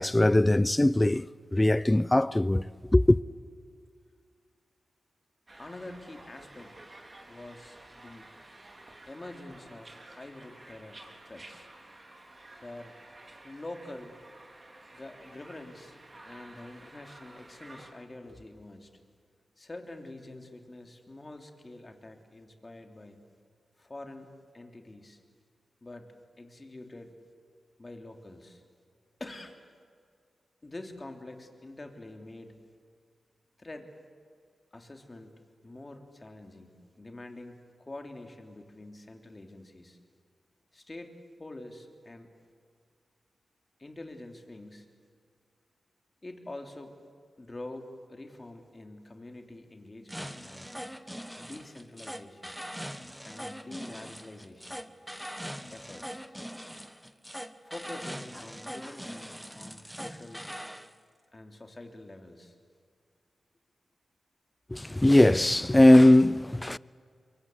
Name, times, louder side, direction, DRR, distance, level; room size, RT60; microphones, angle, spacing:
voice 1, 0.0-3.2 64.7-66.8, left 1 dB, 20° left, 0.6 m, -20 dB
sound 1, 5.5-17.9, right 2 dB, 35° right, 4.3 m, -52 dB
voice 2, 5.6-6.8 7.3-8.3 9.1-11.7 12.6-12.9 13.4-14.2 14.9-16.0 16.2-18.9 19.6-23.2 23.8-24.3 24.5-25.2 25.8-27.1 27.8-28.6 29.2-29.6 30.6-32.6 33.6-33.9 34.7-40.0 40.7-41.1 41.4-42.3 43.8-44.9 46.2-46.9 47.4-50.7 51.4-52.6 53.2-54.8 55.7-56.2 57.6-60.5 61.3-62.6, left 2 dB, 35° left, 3.4 m, -46 dB
sound 2, 50.1-60.9, equal, ahead, 1.4 m, -42 dB
25.5 x 23.5 x 8.1 m
cardioid pair, 50°, 0 cm